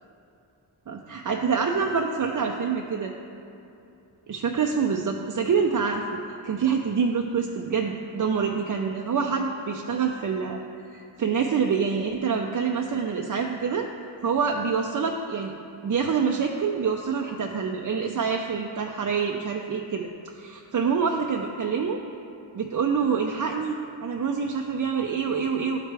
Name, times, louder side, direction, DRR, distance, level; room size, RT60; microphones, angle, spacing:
voice 1, 0.9-3.1 4.3-10.6 10.9-13.9 14.2-15.5 15.8-22.0 22.5-25.8, right 6 dB, 40° right, 1 dB, 0.6 m, -26 dB
10.5 x 4.8 x 3.4 m, 2.7 s
cardioid pair, 50°, 46 cm